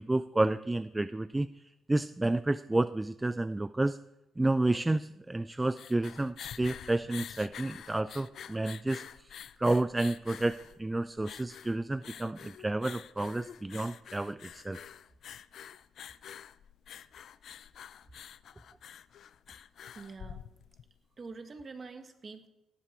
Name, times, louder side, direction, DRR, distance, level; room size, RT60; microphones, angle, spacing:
voice 1, 0.0-4.0 4.4-9.3 9.6-14.8, right 2 dB, 15° right, 14 dB, 0.4 m, -30 dB
sound 1, 5.5-20.9, left 9 dB, 65° left, 0.5 m, -48 dB
voice 2, 19.9-20.4 21.2-22.5, right 4 dB, 35° right, 7 dB, 1.9 m, -45 dB
17.5 x 12.5 x 4.6 m, 0.94 s
cardioid pair, 90°, 0 cm